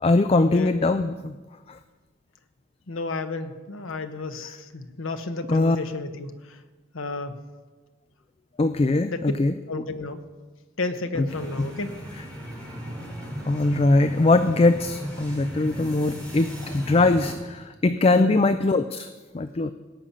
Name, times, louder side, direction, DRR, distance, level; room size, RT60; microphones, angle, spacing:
voice 1, 0.0-1.4 1.7-1.8 4.4-4.6 5.5-5.8 8.6-9.5 11.1-11.3 11.6-11.7 12.1-12.2 13.5-19.1 19.3-19.7, left 2 dB, 30° left, 10 dB, 0.4 m, -21 dB
voice 2, 2.9-6.3 6.9-7.4 9.1-9.2 9.7-10.2 10.8-11.9 18.1-18.4, left 3 dB, 85° left, 8 dB, 1.0 m, -32 dB
sound 1, 11.3-17.3, equal, 5° left, 3.1 m, -36 dB
17.0 x 5.8 x 8.5 m, 1.3 s
head